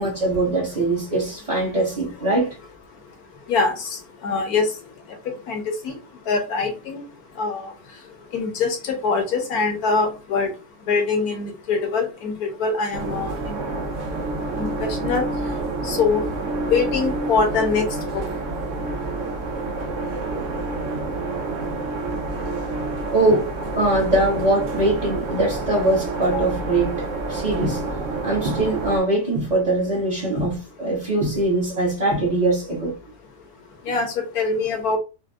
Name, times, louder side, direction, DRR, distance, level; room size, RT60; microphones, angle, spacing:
voice 1, 0.0-2.6 23.1-27.8 28.2-32.9, right 2 dB, 30° right, 1.0 m, -22 dB
voice 2, 3.5-4.7 5.5-6.0 6.3-7.0 7.4-7.7 8.3-10.5 10.9-13.6 14.6-15.3 15.8-16.2 16.7-17.9 18.1-18.2 33.9-35.0, left 4 dB, 65° left, 1.3 m, -23 dB
sound 1, 12.9-29.0, right 2 dB, 70° right, 0.7 m, -28 dB
4.2 x 2.2 x 2.4 m
omnidirectional pair, 1.8 m